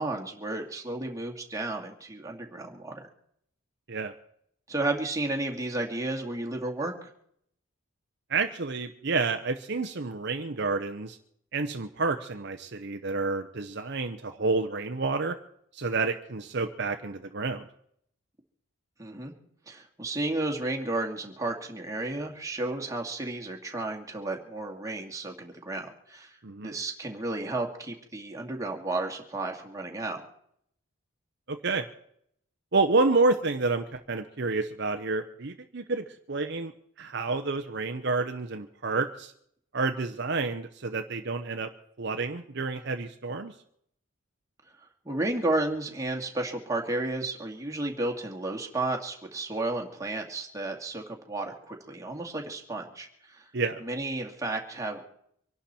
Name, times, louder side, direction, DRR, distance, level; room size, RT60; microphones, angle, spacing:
voice 1, 0.0-3.1 4.7-6.9 19.0-19.3 19.7-26.3 26.6-30.2 45.1-53.5 53.8-55.0, right 2 dB, 15° right, 1 dB, 2.2 m, -32 dB
voice 2, 8.3-11.2 11.5-15.4 15.7-17.7 26.4-26.7 31.5-31.9 32.7-36.7 37.0-39.3 39.7-41.7 42.0-43.5 53.5-53.8, right 3 dB, 55° right, 7 dB, 0.9 m, -29 dB
25.0 x 11.5 x 4.4 m, 0.69 s
head